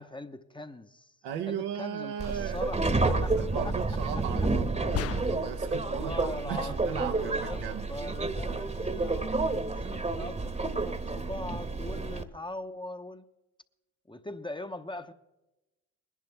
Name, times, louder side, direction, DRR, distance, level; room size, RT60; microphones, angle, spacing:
voice 1, 0.0-1.2 1.5-3.3 3.6-3.7 5.8-13.2 14.1-15.1, left 1 dB, 10° left, 0.9 m, -41 dB
voice 2, 1.2-2.7 3.0-7.9, right 9 dB, 75° right, 1.0 m, -37 dB
Subway metro underground, 2.2-12.2, right 3 dB, 15° right, 1.2 m, -30 dB
sound 1, 4.9-5.7, left 13 dB, 40° left, 0.4 m, -35 dB
21.0 x 11.0 x 3.4 m
hypercardioid pair, 50°, 41 cm